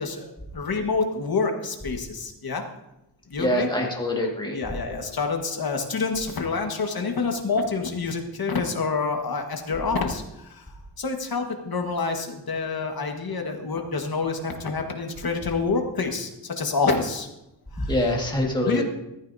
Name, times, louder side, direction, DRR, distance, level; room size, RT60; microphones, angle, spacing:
voice 1, 0.0-2.6 3.3-3.7 4.5-10.7 11.0-17.3 17.7-18.0 18.6-18.8, left 4 dB, 55° left, 3 dB, 1.6 m, -27 dB
voice 2, 3.4-4.6 17.9-18.8, left 1 dB, 10° left, -1 dB, 1.9 m, -24 dB
15.0 x 14.0 x 2.7 m, 0.89 s
wide cardioid pair, 175°, 45 cm